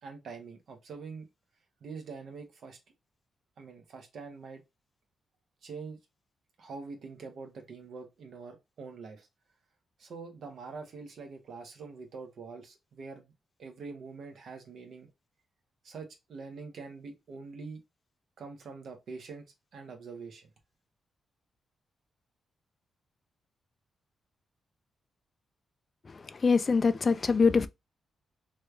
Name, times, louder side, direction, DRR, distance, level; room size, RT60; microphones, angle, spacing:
voice 1, 0.0-1.3 1.8-2.8 3.6-4.6 5.6-6.0 6.6-9.3 10.0-13.3 13.6-15.1 15.8-17.8 18.4-20.5, right 4 dB, 65° right, 0.8 m, -44 dB
voice 2, 26.4-27.7, left 5 dB, 35° left, 0.3 m, -23 dB
3.1 x 2.3 x 3.1 m
cardioid pair, 105°, 0 cm